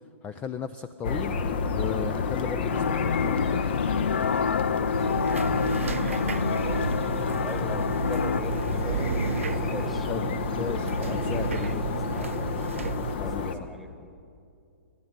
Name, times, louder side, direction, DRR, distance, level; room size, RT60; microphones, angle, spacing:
voice 1, 0.2-1.4 1.7-3.6 7.7-7.9 10.1-11.8 13.2-13.6, left 7 dB, 20° left, 13 dB, 0.5 m, -35 dB
sound 1, 1.0-13.6, left 5 dB, 50° left, 1.4 m, -30 dB
sound 2, 2.7-8.4, left 6 dB, 75° left, 0.4 m, -28 dB
voice 2, 4.6-6.9 7.4-10.1 10.9-12.4 13.2-14.2, right 1 dB, ahead, 7 dB, 1.4 m, -42 dB
sound 3, 4.9-13.1, right 7 dB, 75° right, 0.4 m, -33 dB
27.0 x 11.5 x 9.4 m, 2.5 s
figure-of-eight pair, 120°, 7 cm